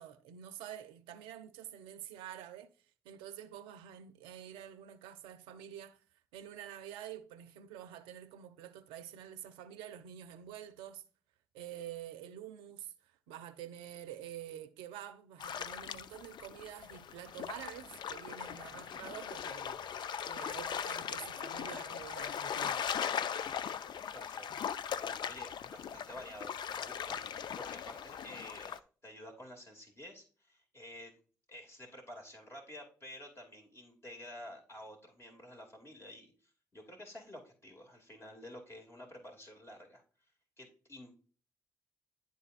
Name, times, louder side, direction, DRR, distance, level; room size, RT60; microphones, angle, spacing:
voice 1, 0.0-11.0 11.5-22.8, right 10 dB, 80° right, 0.6 m, -48 dB
sound 1, 15.4-28.8, left 8 dB, 60° left, 0.5 m, -39 dB
voice 2, 24.1-24.7 25.2-28.8 29.0-31.1 31.5-36.3 36.7-40.0 40.6-41.1, left 1 dB, 30° left, 2.4 m, -50 dB
11.0 x 4.1 x 2.5 m
hypercardioid pair, 40°, 9 cm